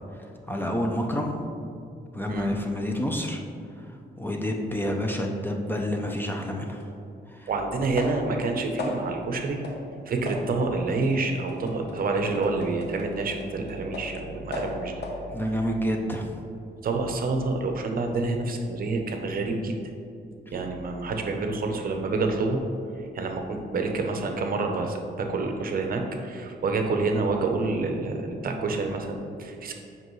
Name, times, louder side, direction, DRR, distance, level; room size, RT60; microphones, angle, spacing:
voice 1, 0.0-1.4 2.1-3.4 3.8-6.8 7.3-7.5 15.3-16.3, equal, 10° left, 1 dB, 0.5 m, -29 dB
sound 1, 6.8-6.9 8.0-8.4 8.8-9.2 9.6-9.9 10.3-14.2 14.5-15.3, left 2 dB, 70° left, 1.0 m, -37 dB
voice 2, 7.5-9.6 10.1-14.9 16.8-19.8 20.5-22.6 23.1-29.7, right 3 dB, 55° right, 3 dB, 0.7 m, -28 dB
7.7 x 5.4 x 3.1 m, 2.5 s
wide cardioid pair, 135°, 18 cm